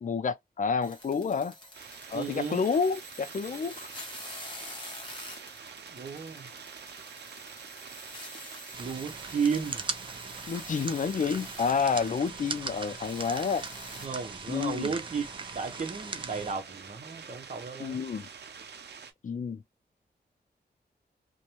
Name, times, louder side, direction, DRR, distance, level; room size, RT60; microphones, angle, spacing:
voice 1, 0.0-1.5 2.1-3.9 10.5-13.7 14.5-14.9 17.8-18.3 19.2-19.6, left 5 dB, 50° left, 0.5 m, -29 dB
sound 1, 0.8-14.1, left 1 dB, 30° left, 1.2 m, -47 dB
sound 2, 1.7-19.1, right 6 dB, 85° right, 0.6 m, -47 dB
voice 2, 2.1-2.6 5.9-6.5 8.8-9.8 14.0-15.3 15.5-18.0, right 5 dB, 45° right, 0.8 m, -33 dB
sound 3, 8.7-16.5, right 4 dB, 30° right, 0.4 m, -40 dB
2.6 x 2.1 x 3.0 m
wide cardioid pair, 105°, 17 cm